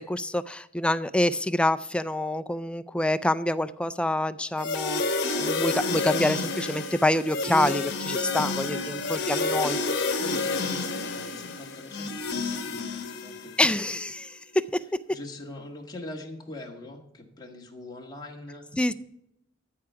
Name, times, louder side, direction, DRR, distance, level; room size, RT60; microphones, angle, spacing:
voice 1, 0.0-9.8 13.6-14.8 18.8-18.9, left 1 dB, 5° left, 13 dB, 0.3 m, -26 dB
sound 1, 4.6-13.7, left 3 dB, 60° left, 1.4 m, -29 dB
voice 2, 8.3-9.7 10.2-13.7 15.1-18.6, left 2 dB, 20° left, 1 dB, 1.6 m, -42 dB
13.5 x 4.8 x 6.7 m, 0.81 s
head